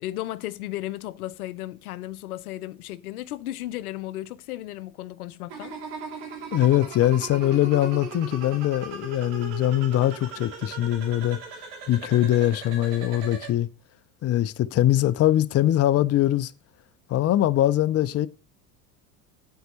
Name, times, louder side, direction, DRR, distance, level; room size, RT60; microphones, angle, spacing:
voice 1, 0.0-5.8, left 15 dB, 85° left, 0.6 m, -35 dB
sound 1, 5.5-13.5, right 5 dB, 70° right, 2.8 m, -38 dB
voice 2, 6.5-11.4 11.9-13.7 14.2-16.5 17.1-18.3, left 13 dB, 35° left, 0.6 m, -22 dB
8.0 x 4.6 x 6.2 m
hypercardioid pair, 75°, 43 cm